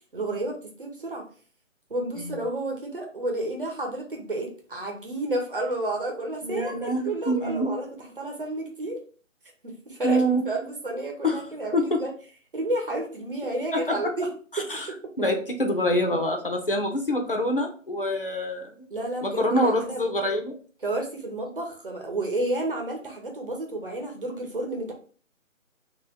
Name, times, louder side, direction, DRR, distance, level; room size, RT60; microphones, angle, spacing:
voice 1, 0.1-1.2 1.9-7.9 8.2-9.0 9.6-12.1 12.5-14.3 14.6-14.7 18.9-20.0 20.8-24.9, right 1 dB, 40° right, 1 dB, 1.0 m, -31 dB
voice 2, 6.4-7.7 10.0-10.4 11.2-11.4 11.7-12.0 13.9-14.0 14.5-14.9 15.2-18.9 19.2-20.6, equal, 45° left, 3 dB, 0.6 m, -25 dB
3.0 x 2.7 x 4.4 m, 0.41 s
figure-of-eight pair, 175°, 40 cm